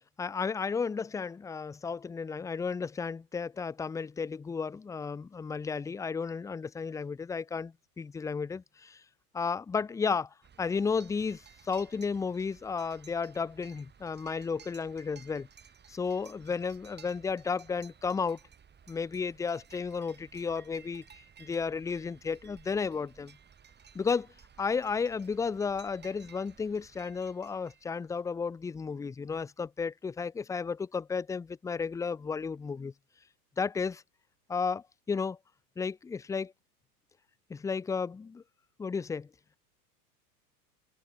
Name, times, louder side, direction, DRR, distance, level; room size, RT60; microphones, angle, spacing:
voice 1, 0.0-9.0 9.3-15.5 15.9-18.4 18.9-23.4 23.9-24.3 24.6-32.9 33.6-34.0 34.5-35.4 35.8-36.5 37.5-38.4 38.8-39.3, left 5 dB, 5° left, 0.5 m, -33 dB
sound 1, 10.4-28.2, right 7 dB, 20° right, 3.4 m, -57 dB
hypercardioid pair, 100°, 46 cm